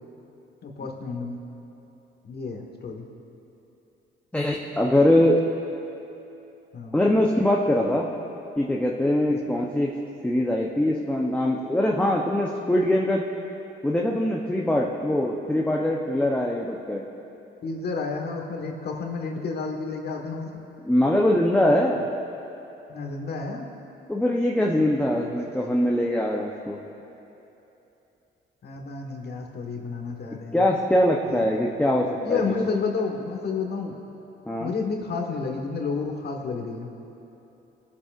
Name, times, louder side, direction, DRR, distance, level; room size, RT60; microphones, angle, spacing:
voice 1, 0.6-1.4 2.2-3.1 6.7-7.0 9.3-9.4 17.6-20.6 22.9-23.7 28.6-30.7 31.2-31.5 32.2-34.0 34.6-36.9, left 4 dB, 55° left, 1 dB, 1.4 m, -30 dB
voice 2, 4.3-5.4 6.9-8.1 8.6-9.9 10.2-13.2 13.8-17.0 20.8-22.1 24.1-26.8 30.5-32.4 34.5-34.7, left 1 dB, 5° left, -2 dB, 0.8 m, -22 dB
21.5 x 7.4 x 2.5 m, 3.0 s
cardioid pair, 90°, 20 cm